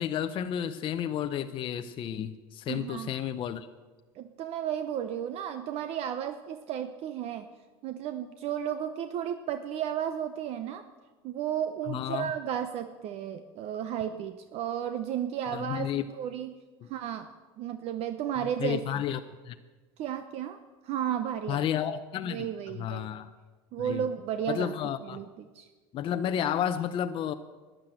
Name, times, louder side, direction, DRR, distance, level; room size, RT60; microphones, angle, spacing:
voice 1, 0.0-3.7 11.9-12.3 15.4-16.1 16.8-16.9 18.6-19.6 21.5-23.3 23.8-24.0 24.5-25.2 25.9-27.3, left 9 dB, 40° left, 8 dB, 0.7 m, -32 dB
voice 2, 2.7-3.1 4.2-7.5 7.8-10.9 11.2-16.5 16.9-17.3 17.6-19.0 20.0-20.6 20.8-21.7 22.2-23.1 23.7-24.7 25.1-25.7, right 9 dB, 50° right, 9 dB, 0.8 m, -33 dB
12.5 x 10.5 x 7.8 m, 1.3 s
supercardioid pair, 115°, 13 cm